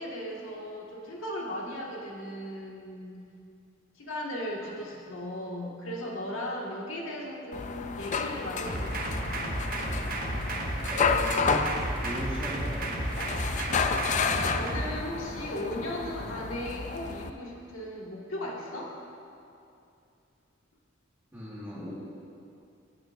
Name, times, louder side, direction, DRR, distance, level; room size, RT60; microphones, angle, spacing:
voice 1, 0.0-3.2 4.0-9.3 14.5-18.9, left 1 dB, 85° left, -3 dB, 1.8 m, -37 dB
sound 1, 7.5-17.3, left 5 dB, 40° left, 0.4 m, -31 dB
sound 2, 8.7-14.9, right 1 dB, 45° right, 1.1 m, -33 dB
voice 2, 10.9-11.7 12.0-13.1 21.3-21.9, equal, 10° right, -9 dB, 1.7 m, -37 dB
17.5 x 8.7 x 2.6 m, 2.6 s
head